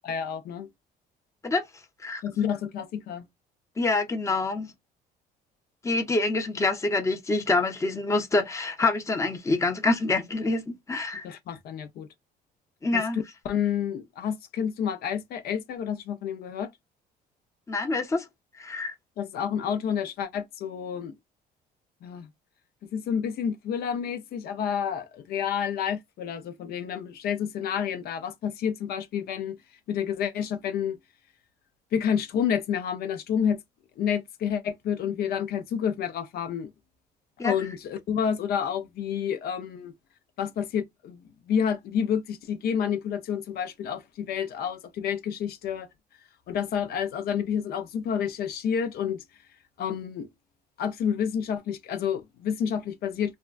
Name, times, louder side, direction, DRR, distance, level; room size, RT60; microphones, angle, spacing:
voice 1, 0.0-0.7 2.2-3.3 11.2-12.1 12.9-16.7 19.2-21.1 22.0-22.3 22.9-29.6 29.9-31.0 31.9-33.6 34.0-36.7 37.4-39.9 40.4-45.9 46.5-49.2 49.8-50.3 50.8-53.3, left 8 dB, 65° left, 0.6 m, -29 dB
voice 2, 3.8-4.7 5.8-11.2 12.8-13.2 17.7-18.3 18.6-18.9 37.4-37.6, left 3 dB, 15° left, 0.7 m, -26 dB
3.4 x 2.2 x 2.4 m
cardioid pair, 110°, 17 cm